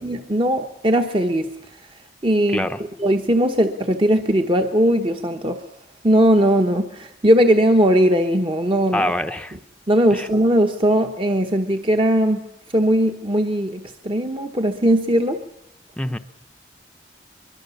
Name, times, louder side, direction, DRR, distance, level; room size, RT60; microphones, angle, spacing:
voice 1, 0.0-1.5 2.2-2.7 3.0-5.6 6.0-9.1 9.9-12.4 12.7-15.4, equal, 30° right, 5 dB, 1.1 m, -19 dB
voice 2, 8.9-9.5 10.1-10.3 16.0-16.2, left 1 dB, 5° left, 7 dB, 0.8 m, -24 dB
23.0 x 23.0 x 7.1 m, 0.87 s
head